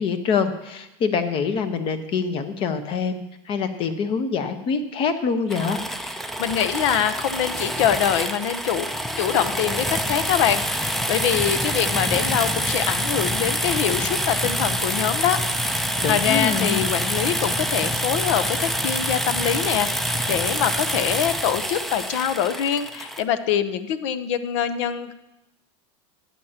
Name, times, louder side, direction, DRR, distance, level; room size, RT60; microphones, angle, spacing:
voice 1, 0.0-5.8 16.0-16.9, left 5 dB, 35° left, 9 dB, 1.0 m, -25 dB
sound 1, 5.5-23.2, equal, ahead, 0.5 m, -26 dB
voice 2, 6.4-8.9 9.2-15.4 15.7-25.1, left 9 dB, 65° left, 12 dB, 0.8 m, -24 dB
15.5 x 10.0 x 2.9 m, 0.92 s
supercardioid pair, 145°, 16 cm